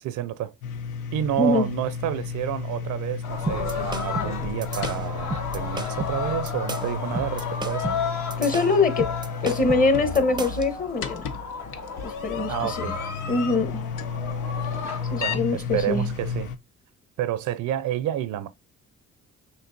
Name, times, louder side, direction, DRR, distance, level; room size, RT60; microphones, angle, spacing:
voice 1, 0.0-0.5 1.1-8.0 12.5-13.0 15.2-16.5 17.2-18.5, right 11 dB, 75° right, 0.5 m, -29 dB
sound 1, 0.6-16.6, left 6 dB, 90° left, 0.6 m, -33 dB
voice 2, 1.4-1.7 8.4-9.1 9.4-11.2 12.0-12.9 13.3-13.9 15.1-16.1, left 3 dB, 30° left, 0.9 m, -23 dB
sound 2, 3.2-15.3, left 5 dB, 65° left, 1.2 m, -33 dB
sound 3, 3.5-10.7, right 3 dB, 15° right, 0.5 m, -33 dB
6.1 x 2.9 x 2.5 m
cardioid pair, 90°, 30 cm